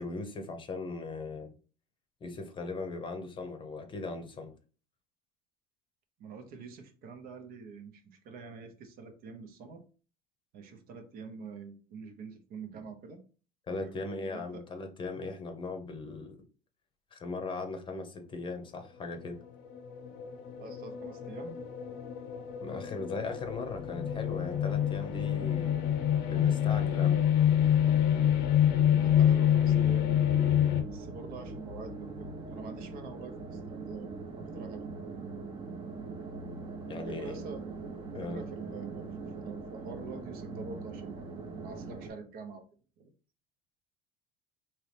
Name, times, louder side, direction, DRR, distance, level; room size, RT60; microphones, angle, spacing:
voice 1, 0.0-1.5 2.2-4.5 13.7-16.4 17.1-19.4 22.6-25.9 26.3-27.2 36.9-37.4 38.1-38.4, left 3 dB, 30° left, 6 dB, 0.8 m, -38 dB
voice 2, 6.2-9.8 10.5-13.2 13.7-14.6 20.6-21.6 28.9-30.2 30.8-34.9 37.1-37.7 38.0-42.6 43.0-43.1, right 4 dB, 55° right, 6 dB, 0.8 m, -46 dB
sound 1, 18.9-30.8, left 10 dB, 70° left, 0.7 m, -27 dB
sound 2, 22.9-42.1, right 3 dB, 25° right, 0.7 m, -43 dB
3.8 x 2.9 x 3.3 m, 0.37 s
supercardioid pair, 120°, 18 cm